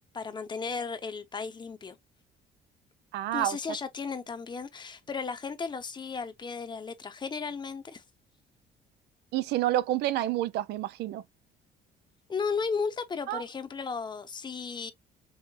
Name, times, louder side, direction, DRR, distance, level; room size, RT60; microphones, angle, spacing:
voice 1, 0.1-2.0 3.3-8.0 12.3-14.9, left 5 dB, 25° left, 0.8 m, -35 dB
voice 2, 3.1-3.6 9.3-11.2 13.3-13.4, right 14 dB, 80° right, 0.5 m, -28 dB
5.6 x 2.1 x 2.6 m
cardioid pair, 110°, 17 cm